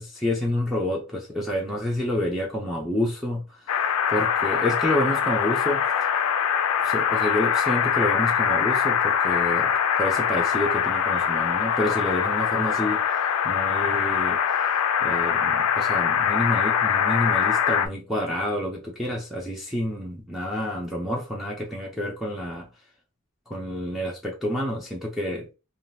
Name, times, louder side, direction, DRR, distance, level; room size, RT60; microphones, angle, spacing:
voice 1, 0.0-5.9 6.8-13.0 13.4-14.7 15.0-22.7 23.5-25.5, left 1 dB, ahead, 0.6 m, -29 dB
sound 1, 3.7-17.9, left 8 dB, 90° left, 0.4 m, -23 dB
3.6 x 2.4 x 2.6 m
head